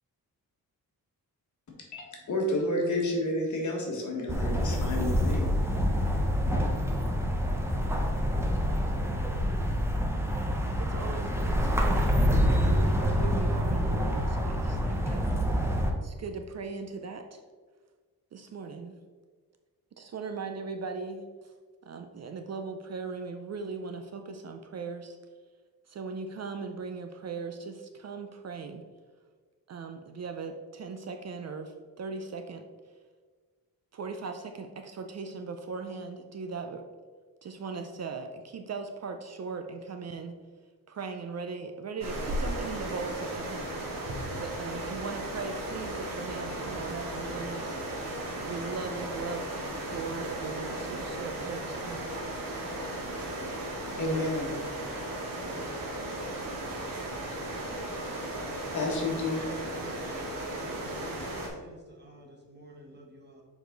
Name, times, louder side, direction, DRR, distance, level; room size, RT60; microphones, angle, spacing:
voice 1, 1.9-5.5 54.0-54.6 58.7-59.5, left 1 dB, 55° left, -1 dB, 1.7 m, -30 dB
sound 1, 4.3-15.9, equal, 5° right, 0.7 m, -27 dB
voice 2, 10.6-12.2 12.7-15.4 16.0-17.4 18.3-19.0 20.0-21.3 21.9-25.2 25.9-28.8 29.7-32.6 33.9-36.8 37.4-40.4 40.9-43.6 44.4-47.8 48.4-49.5 49.8-52.1, right 4 dB, 45° right, 6 dB, 0.5 m, -39 dB
sound 2, 42.0-61.5, right 1 dB, 65° right, 1.9 m, -36 dB
voice 3, 60.0-63.4, right 1 dB, 30° right, 0 dB, 1.2 m, -49 dB
6.6 x 4.9 x 3.9 m, 1.5 s
wide cardioid pair, 150°, 36 cm